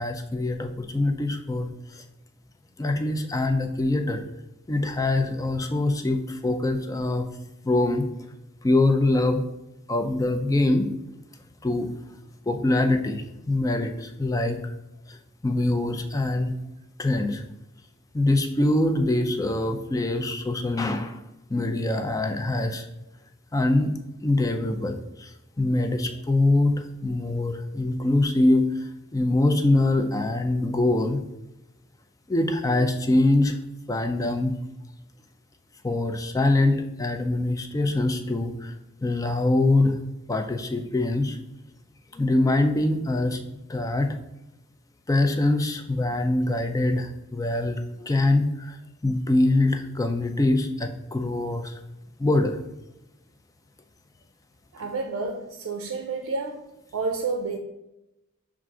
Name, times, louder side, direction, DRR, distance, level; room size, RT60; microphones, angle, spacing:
voice 1, 0.0-2.0 2.8-4.2 4.7-7.3 7.6-8.1 8.6-9.4 9.9-10.9 11.6-11.9 12.5-14.7 15.1-16.5 17.0-17.4 18.1-21.2 21.5-22.9 23.5-23.9 24.2-31.2 32.3-33.6 33.9-34.6 35.8-38.7 39.0-40.0 40.3-41.4 42.1-43.4 43.7-44.2 45.1-48.8 49.0-51.8 52.2-52.6, left 2 dB, 15° left, 0.4 m, -24 dB
voice 2, 54.7-56.7 56.9-57.6, right 3 dB, 80° right, 0.5 m, -30 dB
5.8 x 2.5 x 3.7 m
head